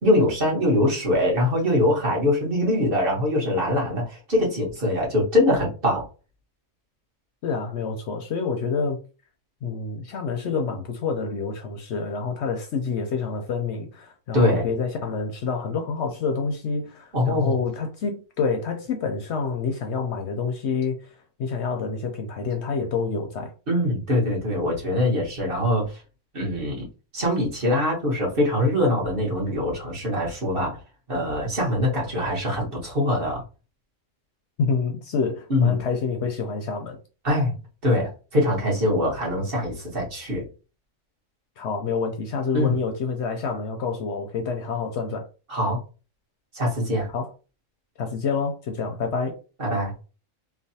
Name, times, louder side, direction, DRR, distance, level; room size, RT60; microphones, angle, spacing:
voice 1, 0.0-6.1 14.3-14.7 17.1-17.5 23.7-26.0 26.3-26.9 27.1-30.8 31.1-33.4 35.5-35.8 37.2-37.5 37.8-40.5 42.5-42.8 45.5-45.8 46.5-47.1 49.6-49.9, left 1 dB, 45° right, 1.3 m, -23 dB
voice 2, 7.4-9.0 9.6-21.1 21.4-23.5 34.6-37.0 41.6-45.2 47.1-47.3 48.0-49.3, left 5 dB, 65° left, 0.7 m, -27 dB
3.2 x 2.1 x 2.7 m
omnidirectional pair, 1.4 m